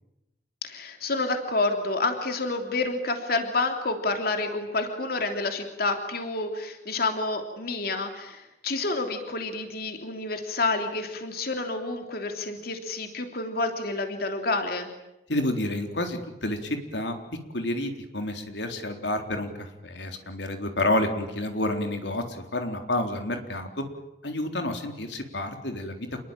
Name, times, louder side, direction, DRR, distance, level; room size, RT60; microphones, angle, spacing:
voice 1, 0.6-14.9, left 3 dB, 60° left, 5 dB, 3.2 m, -29 dB
voice 2, 15.3-17.2 17.5-23.8 24.2-26.1, left 1 dB, 85° left, 5 dB, 3.9 m, -29 dB
28.5 x 22.0 x 9.1 m, 0.92 s
head